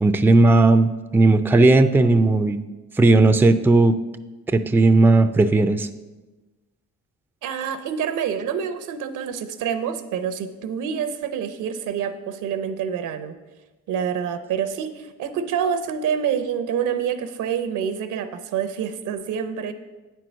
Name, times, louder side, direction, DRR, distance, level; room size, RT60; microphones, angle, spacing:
voice 1, 0.0-2.6 3.0-4.0 4.5-5.9, right 2 dB, 5° right, 10 dB, 0.4 m, -16 dB
voice 2, 7.4-13.4 13.9-19.7, right 8 dB, 85° right, 10 dB, 0.8 m, -27 dB
8.7 x 4.6 x 6.2 m, 1.2 s
cardioid pair, 90°, 30 cm